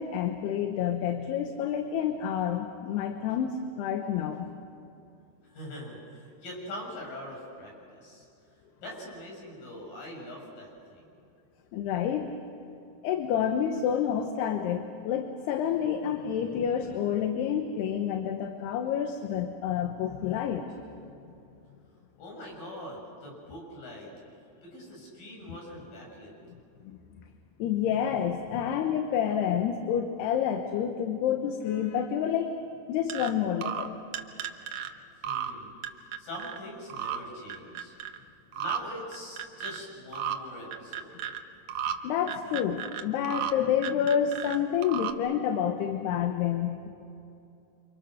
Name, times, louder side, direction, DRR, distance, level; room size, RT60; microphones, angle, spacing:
voice 1, 0.0-4.5 11.7-12.3 13.0-20.6 25.5-25.6 27.6-32.5 32.9-34.0 42.0-46.9, left 8 dB, 75° left, 5 dB, 3.1 m, -29 dB
voice 2, 5.5-8.3 8.8-11.1 22.2-24.1 24.6-26.3 35.2-37.9 38.6-41.2, left 1 dB, 55° left, -1 dB, 8.6 m, -43 dB
sound 1, 33.1-33.3 33.6-33.9 34.1-34.9 35.2-35.5 35.8-36.6 36.9-37.2 37.5-38.2 38.5-38.8 39.1-39.8 40.1-40.4 40.7-41.4 41.7-41.9 42.3-43.5 43.8-44.6 44.8-45.1, right 9 dB, 80° right, 1.6 m, -33 dB
29.5 x 27.0 x 6.6 m, 2.7 s
omnidirectional pair, 4.9 m